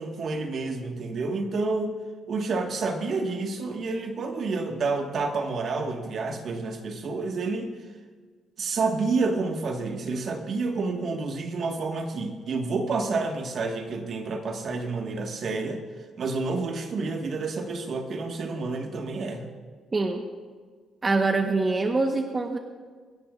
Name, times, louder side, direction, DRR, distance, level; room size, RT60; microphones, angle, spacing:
voice 1, 0.0-2.0 2.3-7.7 8.6-15.8 16.2-19.5, right 3 dB, 55° right, 4 dB, 1.5 m, -29 dB
voice 2, 19.9-20.2 21.0-22.6, right 3 dB, 30° right, 4 dB, 1.0 m, -24 dB
25.0 x 10.5 x 2.4 m, 1.5 s
cardioid pair, 90°, 0 cm